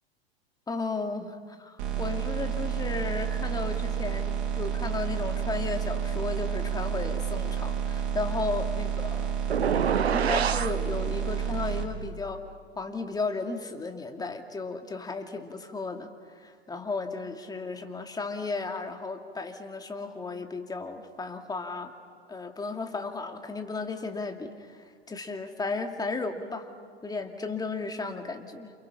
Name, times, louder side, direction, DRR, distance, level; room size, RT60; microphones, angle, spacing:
voice 1, 0.7-9.3 10.1-12.4 12.8-16.1 16.4-21.9 22.3-26.7 27.0-28.7, left 3 dB, 10° left, 5 dB, 2.4 m, -34 dB
sound 1, 1.8-11.8, right 8 dB, 55° right, 3.3 m, -30 dB
sound 2, 9.5-10.8, right 8 dB, 90° right, 0.8 m, -26 dB
29.0 x 28.5 x 5.7 m, 2.1 s
hypercardioid pair, 100°, 31 cm